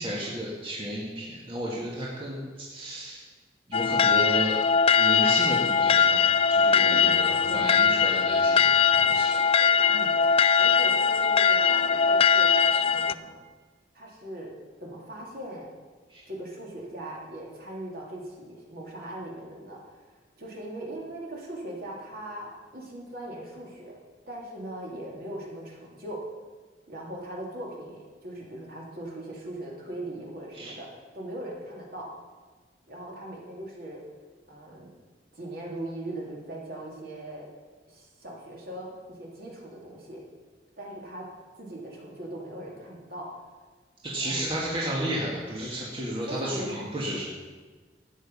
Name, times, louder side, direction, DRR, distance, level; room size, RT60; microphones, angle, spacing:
voice 1, 0.0-3.3 3.7-4.6 5.0-8.8 9.1-9.4 12.0-12.1 16.1-16.2 30.5-30.7 44.0-47.2, right 1 dB, 30° right, -5 dB, 2.0 m, -33 dB
sound 1, 3.7-13.1, left 6 dB, 30° left, 0.3 m, -21 dB
voice 2, 6.8-8.0 9.9-10.1 10.6-12.5 12.9-13.4 13.9-14.5 14.8-15.7 16.2-20.0 20.4-24.0 24.3-26.2 26.9-32.1 32.9-34.0 34.5-34.9 35.3-37.5 37.9-40.2 40.8-41.3 41.6-43.4 44.2-44.5 46.3-46.8, right 1 dB, 55° right, -3 dB, 3.2 m, -39 dB
13.5 x 9.4 x 5.6 m, 1.4 s
head